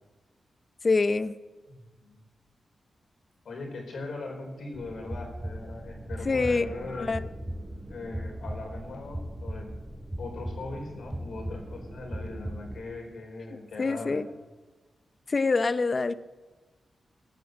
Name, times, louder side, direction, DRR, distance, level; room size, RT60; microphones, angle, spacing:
voice 1, 0.8-1.3 6.3-6.7 7.0-7.2 13.8-14.3 15.3-16.1, left 3 dB, 45° left, 14 dB, 0.8 m, -25 dB
voice 2, 1.8-2.2 3.4-7.2 7.9-9.7 10.2-14.2, left 3 dB, 75° left, 2 dB, 4.4 m, -40 dB
sound 1, 4.7-12.8, right 1 dB, 15° right, 4.0 m, -38 dB
17.0 x 8.5 x 8.0 m, 1.2 s
cardioid pair, 65°, 0 cm